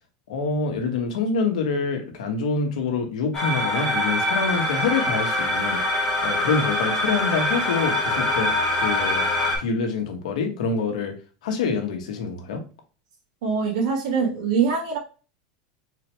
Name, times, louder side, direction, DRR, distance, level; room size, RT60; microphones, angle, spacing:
voice 1, 0.3-5.8 6.2-9.2 9.6-11.1 11.4-12.6, left 4 dB, 85° left, 4 dB, 1.1 m, -26 dB
sound 1, 3.3-9.6, left 1 dB, 15° left, 1.3 m, -24 dB
voice 2, 13.4-15.0, right 5 dB, 70° right, 0 dB, 1.8 m, -23 dB
4.1 x 3.0 x 3.2 m, 0.35 s
supercardioid pair, 175°, 4 cm